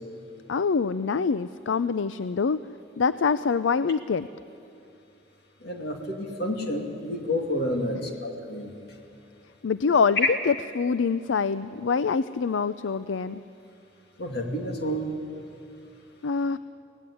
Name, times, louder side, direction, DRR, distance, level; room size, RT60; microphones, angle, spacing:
voice 1, 0.5-2.6 3.0-4.3 7.9-8.1 9.6-13.4 16.2-16.6, left 5 dB, 75° left, 14 dB, 0.5 m, -25 dB
voice 2, 5.6-8.7 14.2-15.1, equal, 55° left, 3 dB, 2.5 m, -30 dB
24.0 x 17.5 x 9.9 m, 2.6 s
head